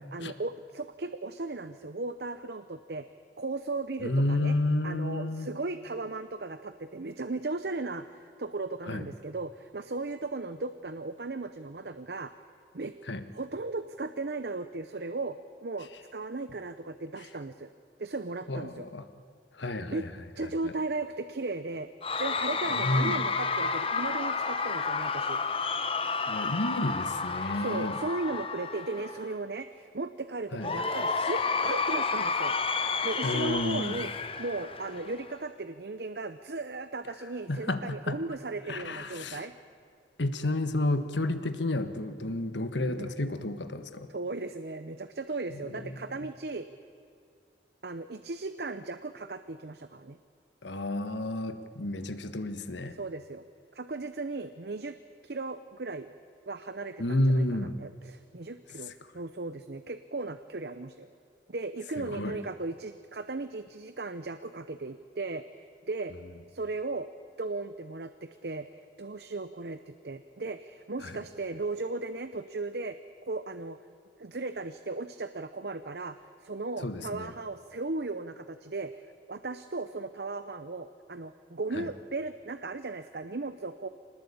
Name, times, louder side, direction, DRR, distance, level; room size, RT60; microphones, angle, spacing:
voice 1, 0.1-3.1 3.4-4.5 4.8-12.3 12.7-12.9 13.3-17.7 18.0-18.9 19.8-20.0 20.4-21.9 22.2-25.4 27.6-32.5 33.0-39.5 42.8-43.1 44.1-46.7 47.8-50.2 53.0-53.4 53.7-55.0 55.2-56.1 56.5-61.1 61.5-65.4 65.9-66.1 66.5-67.1 67.4-68.7 69.0-73.0 73.2-73.8 74.2-76.2 76.4-79.0 79.3-83.9, right 3 dB, 60° right, 10 dB, 0.8 m, -36 dB
voice 2, 4.0-5.5 8.9-9.0 13.1-13.2 18.5-19.0 19.5-20.1 20.4-20.7 22.7-23.2 26.3-28.0 30.5-30.7 33.2-34.0 37.5-38.2 38.7-39.5 40.2-44.1 45.5-46.0 50.6-53.0 57.0-57.8 62.0-62.4 71.0-71.2 76.8-77.3 81.7-81.9, left 1 dB, 85° left, 10 dB, 1.5 m, -31 dB
Cheering / Crowd, 22.0-29.3 30.6-35.3, left 4 dB, 30° left, 1.0 m, -31 dB
25.5 x 19.5 x 8.6 m, 2.3 s
head